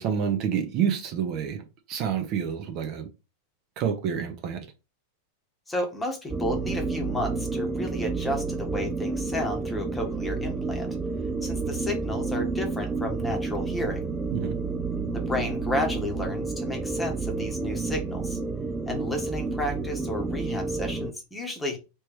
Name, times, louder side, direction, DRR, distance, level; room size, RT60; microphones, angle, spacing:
voice 1, 0.0-1.6 1.9-3.1 3.8-4.6 14.3-14.5, right 8 dB, 40° right, 5 dB, 0.8 m, -28 dB
voice 2, 5.7-10.9 11.4-14.0 15.1-18.4 18.9-21.8, left 1 dB, 10° left, 3 dB, 1.1 m, -32 dB
sound 1, 6.3-21.1, right 4 dB, 10° right, 0.3 m, -30 dB
3.3 x 3.1 x 4.7 m, 0.28 s
supercardioid pair, 150°, 0 cm